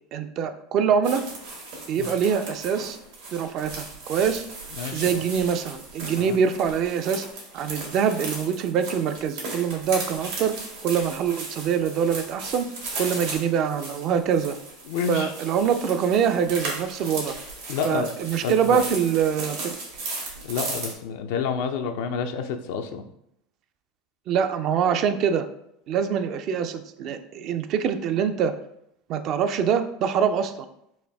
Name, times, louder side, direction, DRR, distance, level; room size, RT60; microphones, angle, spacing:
voice 1, 0.1-1.2 1.9-3.0 3.3-4.4 4.9-7.3 7.5-10.5 10.8-12.7 13.0-14.6 15.1-17.3 17.8-19.7 24.3-25.5 25.9-28.5 29.1-30.7, right 7 dB, 50° right, 8 dB, 0.4 m, -24 dB
sound 1, 1.0-20.9, right 3 dB, 80° right, 1.5 m, -36 dB
voice 2, 4.8-5.2 6.2-6.4 14.9-15.3 17.7-18.1 18.4-18.8 20.4-23.1, left 6 dB, 70° left, 5 dB, 0.3 m, -29 dB
4.3 x 2.6 x 3.4 m, 0.75 s
hypercardioid pair, 85°, 0 cm